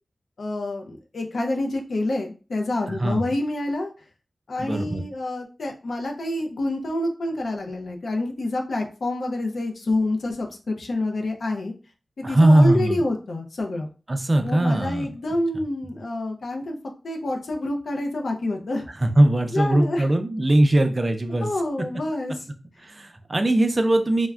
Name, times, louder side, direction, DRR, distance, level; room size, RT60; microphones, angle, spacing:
voice 1, 0.4-3.9 4.5-11.7 12.2-13.9 14.4-16.8 17.0-18.9 19.5-20.1 21.4-22.5, left 2 dB, 75° left, 2 dB, 0.4 m, -27 dB
voice 2, 2.9-3.3 4.6-5.0 12.2-13.0 14.1-15.1 19.0-21.5 22.8-24.3, right 1 dB, 35° right, 6 dB, 0.4 m, -20 dB
3.4 x 2.1 x 2.2 m, 0.34 s
wide cardioid pair, 115°, 0 cm